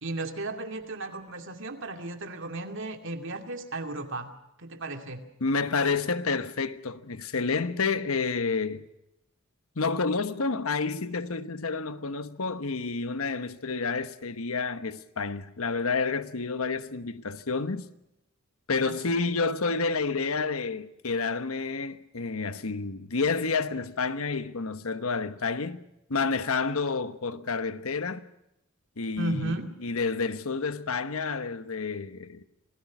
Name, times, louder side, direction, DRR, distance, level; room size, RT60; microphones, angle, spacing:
voice 1, 0.0-4.3 4.6-5.2 18.8-19.2 29.2-29.7, right 2 dB, 60° right, 2.5 m, -35 dB
voice 2, 5.4-8.8 9.8-17.9 18.7-25.8 26.1-28.2 29.0-32.4, left 4 dB, 80° left, 1.2 m, -29 dB
27.5 x 18.5 x 6.1 m
head